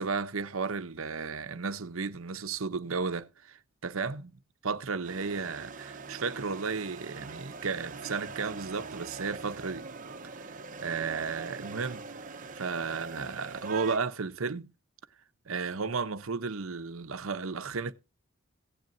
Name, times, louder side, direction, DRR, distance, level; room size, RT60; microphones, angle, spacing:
voice 1, 0.0-4.3 4.6-9.8 10.4-10.5 10.8-12.1 12.5-14.7 15.5-17.9, right 4 dB, 75° right, 0.8 m, -34 dB
sound 1, 5.0-14.0, right 4 dB, 40° right, 0.9 m, -43 dB
16.5 x 10.5 x 2.7 m
head